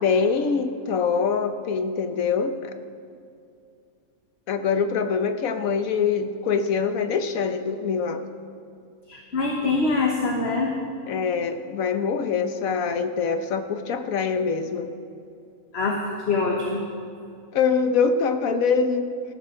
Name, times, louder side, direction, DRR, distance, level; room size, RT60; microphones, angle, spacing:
voice 1, 0.0-2.7 4.5-8.3 11.1-14.9 17.5-19.1, left 5 dB, 75° left, 9 dB, 1.3 m, -24 dB
voice 2, 9.1-10.7 15.7-16.0 16.3-16.8, left 3 dB, 50° left, 0 dB, 1.4 m, -24 dB
19.0 x 13.5 x 3.8 m, 2.5 s
omnidirectional pair, 1.5 m